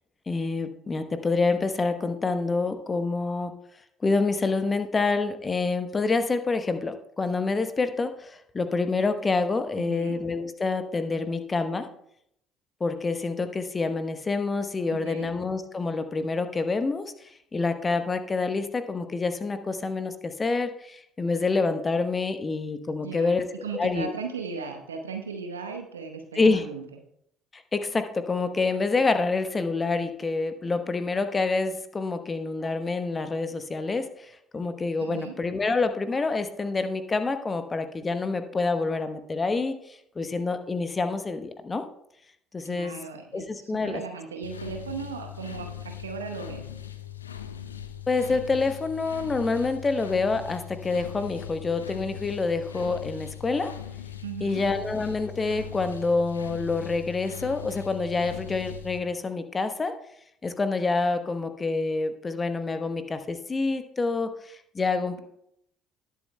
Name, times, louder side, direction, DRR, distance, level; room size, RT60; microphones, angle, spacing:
voice 1, 0.3-3.5 4.0-11.9 12.8-17.1 17.5-23.5 23.7-24.1 26.3-26.6 27.5-39.7 40.2-41.8 42.5-42.9 43.3-44.0 48.1-53.7 54.4-59.9 60.4-65.2, left 3 dB, 25° left, 9 dB, 0.9 m, -27 dB
voice 2, 9.8-10.2 14.9-15.3 23.0-26.8 35.0-35.3 42.6-45.7 46.0-46.6 54.2-54.6, right 5 dB, 80° right, 5 dB, 0.9 m, -37 dB
sound 1, 44.4-59.0, left 10 dB, 85° left, 0.5 m, -40 dB
19.0 x 7.5 x 2.2 m, 0.74 s
figure-of-eight pair, 55°, 0 cm